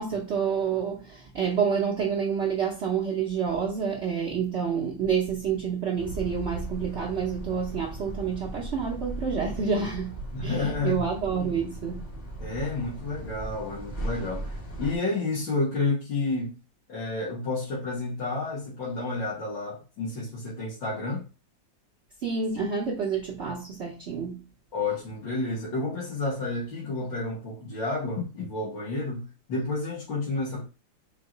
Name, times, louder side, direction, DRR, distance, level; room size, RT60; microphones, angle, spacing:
voice 1, 0.0-12.1 22.2-24.5, right 6 dB, 70° right, 0.6 m, -28 dB
sound 1, 6.0-15.0, right 1 dB, 35° left, 0.7 m, -38 dB
voice 2, 10.3-11.0 12.4-16.6 16.9-21.3 24.7-30.6, left 3 dB, 70° left, 2.1 m, -30 dB
4.6 x 2.1 x 3.8 m
omnidirectional pair, 2.0 m